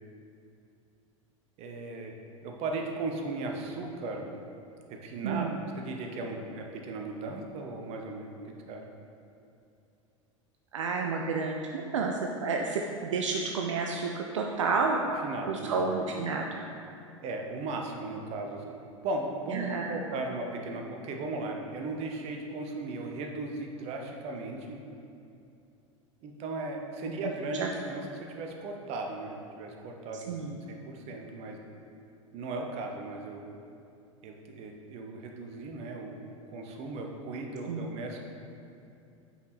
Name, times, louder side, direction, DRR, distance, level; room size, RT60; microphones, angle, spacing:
voice 1, 1.6-2.1 2.4-4.3 5.0-5.5 5.8-8.8 15.2-15.8 16.3-16.5 17.2-18.6 19.0-24.8 26.2-30.4 30.7-31.6 32.3-33.4 34.2-38.2, right 2 dB, 40° right, 2 dB, 0.8 m, -37 dB
voice 2, 5.2-5.6 10.7-15.2 15.4-16.6 19.5-20.0 27.5-27.7 30.3-30.6 37.7-37.9, right 4 dB, 65° right, 1 dB, 0.4 m, -30 dB
5.3 x 4.6 x 4.1 m, 2.6 s
figure-of-eight pair, 80°, 17 cm